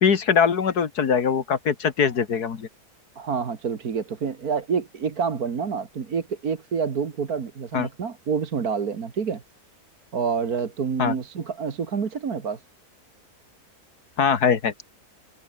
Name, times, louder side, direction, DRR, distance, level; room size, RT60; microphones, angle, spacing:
voice 1, 0.0-2.7 7.7-7.9 11.0-11.1 14.2-14.7, left 6 dB, 90° left, 2.3 m, -22 dB
voice 2, 3.2-9.4 10.1-12.6, right 6 dB, 75° right, 2.3 m, -28 dB
omnidirectional pair, 1.6 m